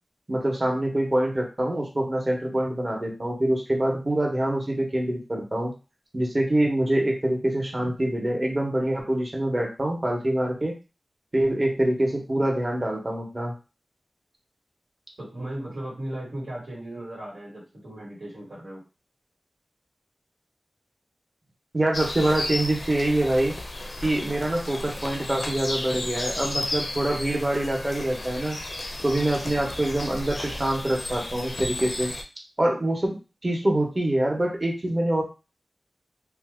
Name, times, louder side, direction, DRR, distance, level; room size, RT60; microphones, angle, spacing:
voice 1, 0.3-5.7 6.1-10.8 11.3-13.5 21.7-23.5 24.0-28.6 29.0-32.1 32.6-33.2 33.4-35.2, right 1 dB, 35° right, 0 dB, 0.9 m, -25 dB
voice 2, 15.2-18.8, right 1 dB, 80° right, -6 dB, 1.4 m, -36 dB
sound 1, 21.9-32.2, left 1 dB, 55° left, 0.5 m, -33 dB
2.7 x 2.2 x 3.5 m, 0.32 s
wide cardioid pair, 65°, 0 cm